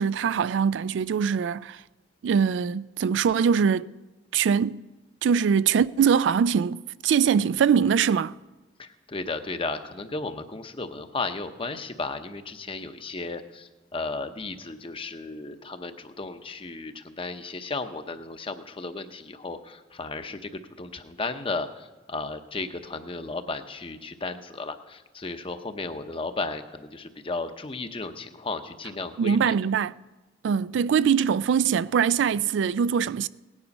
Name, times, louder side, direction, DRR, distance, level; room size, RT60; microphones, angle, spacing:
voice 1, 0.0-1.8 2.2-3.9 4.3-4.8 5.2-8.3 29.2-29.9 30.4-33.3, right 7 dB, 80° right, 0.3 m, -22 dB
voice 2, 8.8-29.6, left 3 dB, 30° left, 0.8 m, -34 dB
17.5 x 9.8 x 5.3 m
head